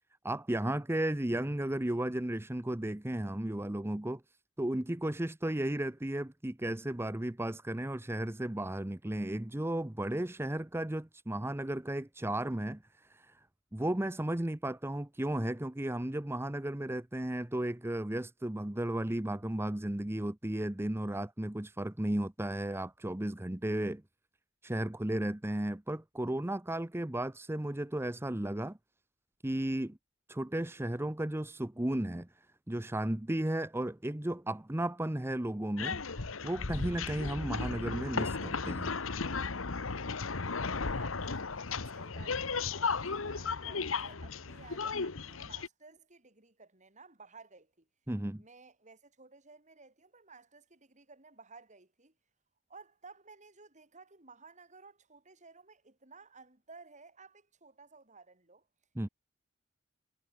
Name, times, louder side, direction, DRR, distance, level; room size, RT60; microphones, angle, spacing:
voice 1, 0.2-4.2 4.6-13.4 13.7-24.0 24.6-28.8 29.4-30.0 30.3-38.9 48.1-48.4 59.0-59.1, right 1 dB, 10° right, 0.7 m, -34 dB
sound 1, 35.8-45.7, left 4 dB, 75° left, 1.3 m, -35 dB
voice 2, 40.8-47.9 48.4-52.1 52.7-58.7, right 4 dB, 35° right, 5.5 m, -56 dB
head